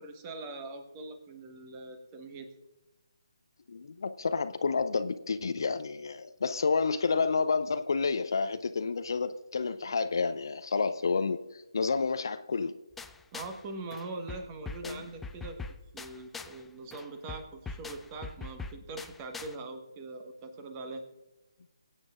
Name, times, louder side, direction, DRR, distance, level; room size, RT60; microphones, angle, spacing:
voice 1, 0.0-2.5 13.3-15.6 15.9-21.0, right 3 dB, 20° right, 1.3 m, -42 dB
voice 2, 3.7-12.7 14.8-15.0, left 4 dB, 55° left, 0.6 m, -30 dB
sound 1, 13.0-13.6 13.9-16.6 16.9-19.6, left 4 dB, 5° left, 0.4 m, -43 dB
22.5 x 9.0 x 2.5 m
figure-of-eight pair, 145°, 3 cm